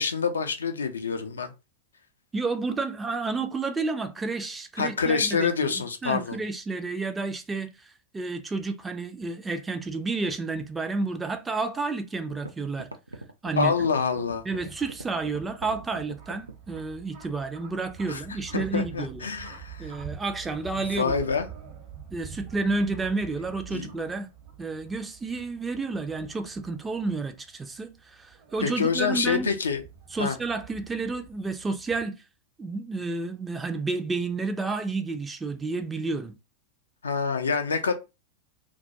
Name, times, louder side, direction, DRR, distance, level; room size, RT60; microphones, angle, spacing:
voice 1, 0.0-1.5 4.8-6.4 13.5-14.5 18.1-18.2 18.5-19.9 20.7-21.5 23.7-24.0 28.6-29.8 30.2-30.4 37.0-37.9, left 5 dB, 70° left, 0.4 m, -26 dB
voice 2, 2.3-5.7 6.0-7.7 8.1-12.9 13.4-13.7 14.5-19.2 19.8-21.1 22.1-24.3 24.6-29.5 30.1-32.1 32.6-36.3, right 3 dB, 15° right, 0.4 m, -30 dB
sound 1, 11.8-11.9 12.3-16.9, right 2 dB, 80° right, 0.3 m, -41 dB
sound 2, 14.2-32.0, right 7 dB, 50° right, 0.8 m, -46 dB
2.3 x 2.1 x 2.7 m
figure-of-eight pair, 90°, 0 cm